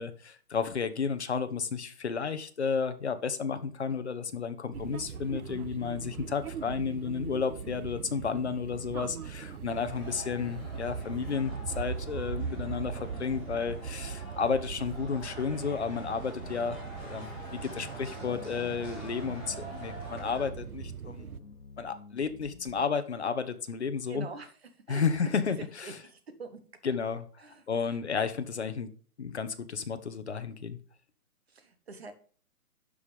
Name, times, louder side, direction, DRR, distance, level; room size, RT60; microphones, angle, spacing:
voice 1, 0.0-16.8 17.0-21.3 21.8-24.3 24.9-26.0 26.8-27.3 27.7-28.9 29.2-30.8, left 6 dB, 45° left, 10 dB, 1.0 m, -32 dB
sound 1, 4.7-21.4, right 7 dB, 65° right, 0.8 m, -40 dB
sound 2, 9.7-20.5, equal, 10° right, 1.1 m, -46 dB
sound 3, 15.5-22.9, left 5 dB, 75° left, 1.4 m, -51 dB
voice 2, 24.1-24.5 24.9-25.0 25.6-26.6 27.4-28.0 31.5-32.1, right 4 dB, 40° right, 9 dB, 1.5 m, -45 dB
11.5 x 5.0 x 5.1 m, 0.43 s
hypercardioid pair, 180°, 46 cm